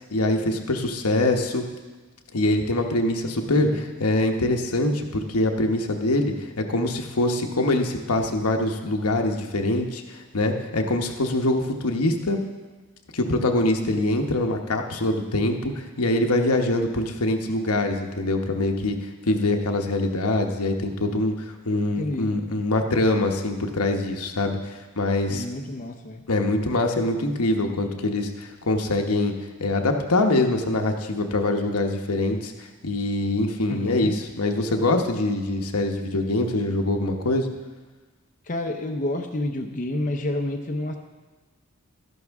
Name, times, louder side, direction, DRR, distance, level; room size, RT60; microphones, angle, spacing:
voice 1, 0.1-1.7 2.3-12.4 13.1-19.0 19.3-25.4 26.3-29.3 29.6-37.5, left 2 dB, 85° left, 3 dB, 1.0 m, -24 dB
voice 2, 3.5-3.9 22.0-22.3 25.3-26.2 33.7-34.1 38.5-40.9, left 1 dB, 35° left, 3 dB, 0.7 m, -29 dB
13.0 x 11.0 x 3.6 m, 1.2 s
head